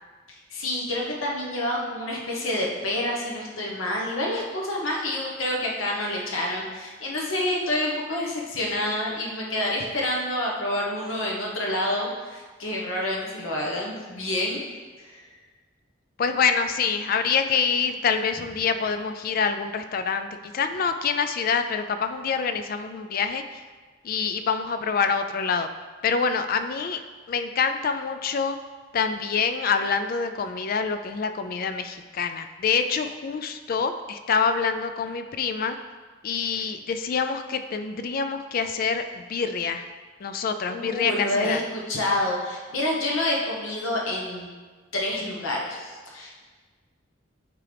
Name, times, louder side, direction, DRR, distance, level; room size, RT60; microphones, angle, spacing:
voice 1, 0.3-14.6 15.0-15.2 40.7-44.5 44.9-46.4, left 1 dB, 85° left, -2 dB, 1.1 m, -28 dB
voice 2, 16.2-20.3 20.5-23.4 24.0-25.7 26.0-27.0 27.3-28.6 28.9-35.8 36.2-39.8 40.2-41.6, left 5 dB, 45° left, 9 dB, 0.3 m, -26 dB
8.6 x 3.7 x 3.3 m, 1.4 s
head